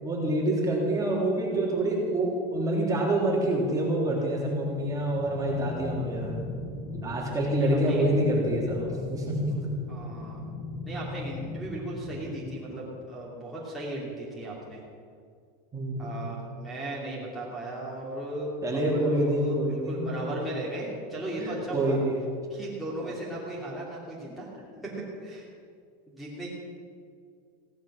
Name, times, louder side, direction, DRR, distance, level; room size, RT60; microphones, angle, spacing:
voice 1, 0.0-6.4 7.0-9.7 15.7-16.1 18.6-20.1 21.4-22.2 23.0-23.1 24.8-24.9, right 1 dB, 15° right, -3 dB, 3.5 m, -27 dB
sound 1, 4.7-12.7, left 3 dB, 45° left, 5.3 m, -38 dB
voice 2, 7.6-8.1 9.9-10.4 10.8-14.8 16.0-22.0 22.5-24.5 24.8-25.5 26.1-26.5, right 1 dB, ahead, -8 dB, 3.1 m, -36 dB
16.5 x 11.5 x 6.4 m, 2.2 s
supercardioid pair, 145°, 21 cm